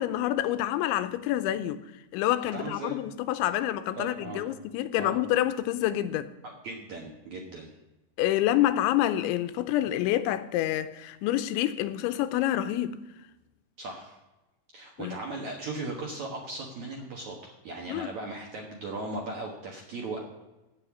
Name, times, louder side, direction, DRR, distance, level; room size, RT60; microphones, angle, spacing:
voice 1, 0.0-1.8 2.1-6.3 8.2-13.0 15.0-15.2 17.9-18.1, left 13 dB, 85° left, 3.0 m, -27 dB
voice 2, 2.5-3.0 4.0-4.4 5.0-5.2 6.6-7.7 13.8-14.2 14.7-20.2, right 2 dB, 65° right, 1.9 m, -37 dB
16.0 x 5.6 x 8.4 m
omnidirectional pair, 5.4 m